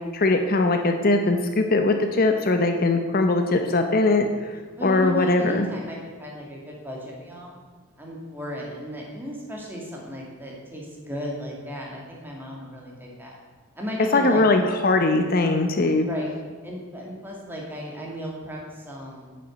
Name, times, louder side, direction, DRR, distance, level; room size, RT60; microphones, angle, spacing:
voice 1, 0.1-5.7 14.1-16.1, left 2 dB, 45° left, 5 dB, 0.7 m, -21 dB
voice 2, 4.8-7.6 8.0-13.4 13.8-14.5 16.0-16.3 16.6-19.4, equal, 10° right, -3 dB, 2.3 m, -35 dB
9.0 x 6.7 x 7.9 m, 1.5 s
head